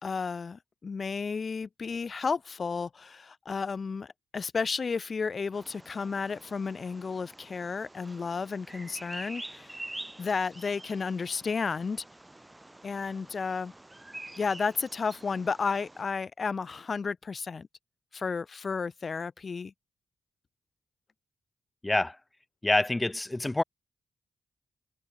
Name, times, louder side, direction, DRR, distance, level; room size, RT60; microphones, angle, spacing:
voice 1, 0.0-9.8 10.2-12.0 12.8-13.7 14.4-17.7 18.1-19.7, left 5 dB, 50° left, 1.3 m, -32 dB
Bird vocalization bird call bird song, 5.5-16.0, right 1 dB, 15° right, 5.6 m, -47 dB
voice 2, 21.8-22.2 22.6-23.6, left 2 dB, 20° left, 1.0 m, -26 dB
supercardioid pair, 50°, 0 cm